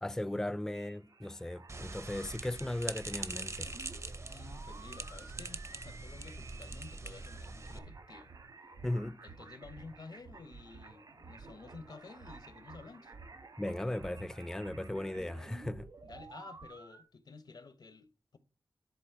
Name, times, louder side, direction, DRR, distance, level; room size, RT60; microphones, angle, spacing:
voice 1, 0.0-3.7 8.8-9.2 13.6-15.9, left 1 dB, 5° left, 0.4 m, -37 dB
sound 1, 0.7-17.0, right 3 dB, 65° right, 1.3 m, -54 dB
sound 2, 1.7-7.8, right 2 dB, 45° right, 0.6 m, -43 dB
sound 3, 3.4-16.7, right 4 dB, 85° right, 0.5 m, -55 dB
voice 2, 4.3-8.3 9.2-13.1 16.0-18.4, left 4 dB, 75° left, 0.9 m, -52 dB
10.5 x 4.0 x 4.7 m
wide cardioid pair, 75°, 7 cm